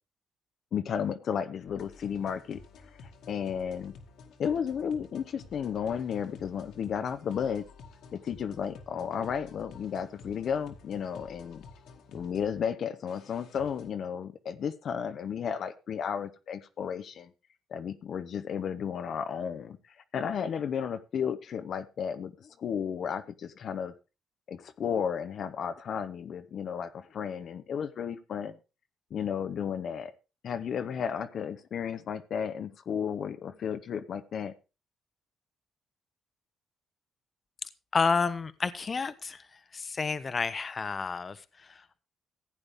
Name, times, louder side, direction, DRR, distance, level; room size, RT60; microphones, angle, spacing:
voice 1, 0.7-2.6 3.3-3.9 4.4-7.6 8.1-11.6 12.1-17.3 17.7-19.8 20.1-23.9 24.5-28.6 29.1-30.1 30.4-34.5, left 7 dB, 60° left, 9 dB, 0.8 m, -33 dB
sound 1, 1.7-13.9, left 4 dB, 80° left, 2.1 m, -52 dB
voice 2, 37.9-39.5 39.7-42.0, left 5 dB, 35° left, 13 dB, 0.9 m, -30 dB
15.5 x 8.8 x 3.5 m, 0.30 s
cardioid pair, 90°, 0 cm